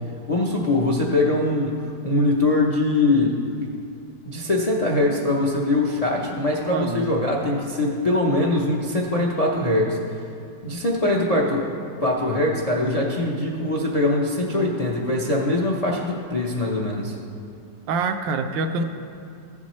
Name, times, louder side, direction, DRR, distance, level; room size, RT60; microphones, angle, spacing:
voice 1, 0.3-3.4 4.2-10.0 10.6-11.7 12.0-17.2, left 2 dB, 75° left, -2 dB, 0.3 m, -22 dB
voice 2, 6.7-7.1 17.9-18.8, right 4 dB, 90° right, 6 dB, 1.4 m, -25 dB
15.0 x 7.3 x 3.1 m, 2.4 s
omnidirectional pair, 2.0 m